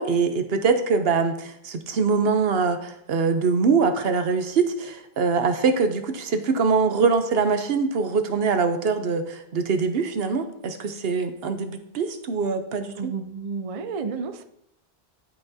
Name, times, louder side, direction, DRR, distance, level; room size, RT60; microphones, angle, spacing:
voice 1, 0.0-13.1, right 5 dB, 75° right, 8 dB, 1.0 m, -23 dB
voice 2, 12.9-14.4, right 5 dB, 45° right, 9 dB, 0.5 m, -31 dB
12.0 x 5.9 x 2.7 m, 0.76 s
omnidirectional pair, 1.0 m